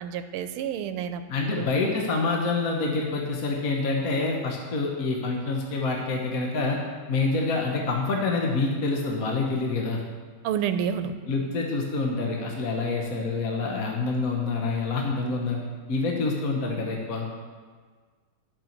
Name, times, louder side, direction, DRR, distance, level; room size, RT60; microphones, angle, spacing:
voice 1, 0.0-1.2 1.5-1.7 10.4-11.1, right 8 dB, 85° right, 10 dB, 1.5 m, -29 dB
voice 2, 1.3-6.8 7.1-10.0 11.3-15.6 15.9-17.3, left 3 dB, 50° left, 0 dB, 1.3 m, -27 dB
11.5 x 6.1 x 6.5 m, 1.5 s
omnidirectional pair, 2.4 m